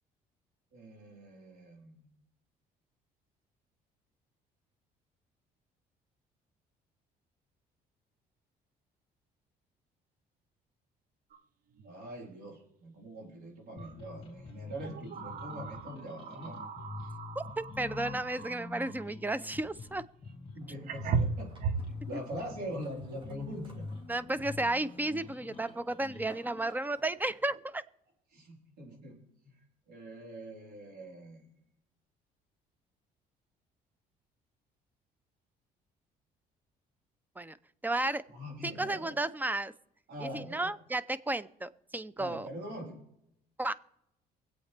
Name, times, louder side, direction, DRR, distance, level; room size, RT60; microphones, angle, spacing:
voice 1, 0.7-2.1 11.8-16.6 17.0-17.1 20.5-21.5 22.0-23.8 27.5-27.6 28.3-29.2 29.4-29.6 29.9-31.5 38.3-39.1 40.1-40.7 42.2-43.0, equal, 75° right, -1 dB, 4.0 m, -43 dB
sound 1, 11.3-11.4 11.8-11.9 13.8-14.0 14.8-19.1 20.3-20.4 20.9-22.0, right 5 dB, 55° right, 0.7 m, -37 dB
sound 2, 13.8-26.7, left 4 dB, 30° left, 2.4 m, -45 dB
voice 2, 17.4-20.0 22.1-22.2 24.1-27.8 37.4-37.6 37.8-38.2 38.6-39.7 40.2-42.5 43.6-43.7, right 2 dB, 10° right, 17 dB, 0.5 m, -33 dB
sound 3, 20.6-27.6, right 1 dB, 30° right, 2.0 m, -58 dB
24.0 x 8.3 x 3.3 m, 0.79 s
cardioid pair, 110°, 17 cm